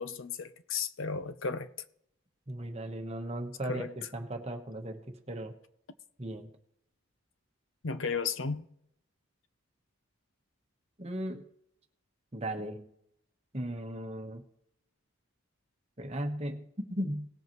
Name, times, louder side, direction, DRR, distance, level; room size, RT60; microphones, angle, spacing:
voice 1, 0.0-1.7 3.7-3.9 7.8-8.6, left 5 dB, 65° left, 0.7 m, -34 dB
voice 2, 2.5-3.9 4.1-5.5 6.2-6.5 11.0-11.5 12.3-12.9 13.5-14.4 16.0-17.3, right 1 dB, 30° right, 1.1 m, -37 dB
18.5 x 8.0 x 3.1 m
head